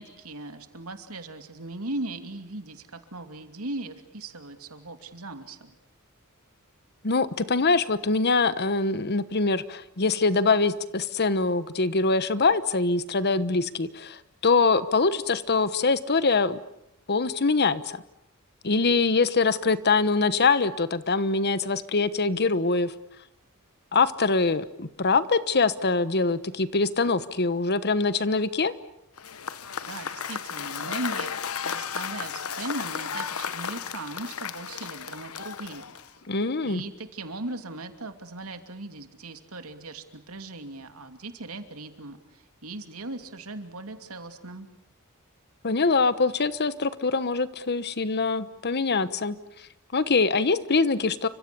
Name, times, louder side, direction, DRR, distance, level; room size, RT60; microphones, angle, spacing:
voice 1, 0.0-5.8 29.9-31.3 31.6-35.9 36.6-44.7, right 2 dB, 90° right, 7 dB, 2.7 m, -38 dB
voice 2, 7.0-16.6 17.1-18.0 18.6-22.9 23.9-28.7 36.3-36.8 45.6-49.4 49.9-51.3, left 4 dB, 50° left, 14 dB, 1.2 m, -24 dB
Cheering / Applause / Crowd, 29.2-36.3, left 7 dB, 80° left, 1.2 m, -34 dB
30.0 x 25.0 x 7.0 m, 0.81 s
head